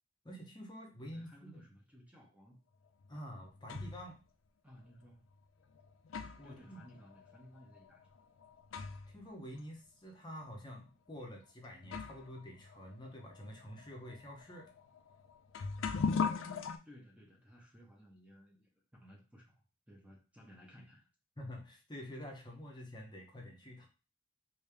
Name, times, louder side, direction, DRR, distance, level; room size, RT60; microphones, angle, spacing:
voice 1, 0.2-1.7 3.1-4.2 6.4-6.8 9.1-14.7 21.4-23.9, equal, 25° left, 0 dB, 0.8 m, -48 dB
voice 2, 1.0-2.6 4.6-5.3 6.4-8.2 16.8-19.5 19.9-21.1, equal, 5° right, -1 dB, 0.8 m, -58 dB
sound 1, 3.0-4.1 5.0-5.1 5.7-9.2 9.5-9.6 10.4-10.6 11.4-11.5 11.8-16.8, left 5 dB, 85° left, 0.4 m, -40 dB
3.3 x 2.7 x 3.3 m, 0.33 s
head